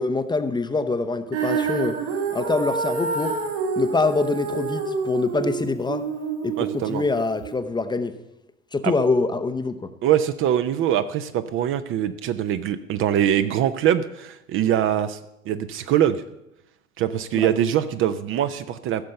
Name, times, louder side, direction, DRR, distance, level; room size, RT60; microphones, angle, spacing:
voice 1, 0.0-2.0 2.3-3.3 3.8-6.0 6.4-8.1 8.7-9.9 17.3-17.5, left 3 dB, 10° left, 9 dB, 0.7 m, -24 dB
Female singing, 1.3-7.5, right 5 dB, 60° right, 3.3 m, -28 dB
voice 2, 6.6-7.0 8.8-8.9 10.0-15.2 15.5-16.2 17.0-19.0, right 10 dB, 30° right, 11 dB, 0.6 m, -23 dB
15.0 x 6.4 x 6.8 m, 0.90 s
figure-of-eight pair, 80°, 40 cm